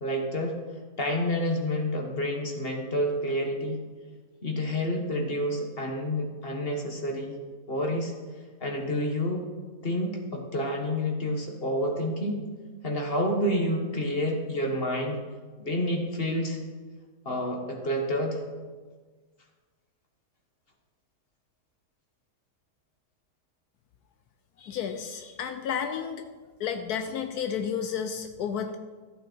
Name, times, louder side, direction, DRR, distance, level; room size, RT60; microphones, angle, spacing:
voice 1, 0.0-0.6 1.0-3.8 4.4-7.3 7.7-8.1 8.6-9.4 9.8-12.4 12.8-15.2 15.6-16.6 17.2-18.4, equal, 40° left, 2 dB, 1.5 m, -29 dB
voice 2, 24.6-26.2 26.6-28.8, left 7 dB, 80° left, 7 dB, 1.2 m, -32 dB
14.0 x 9.2 x 4.4 m, 1.4 s
omnidirectional pair, 1.6 m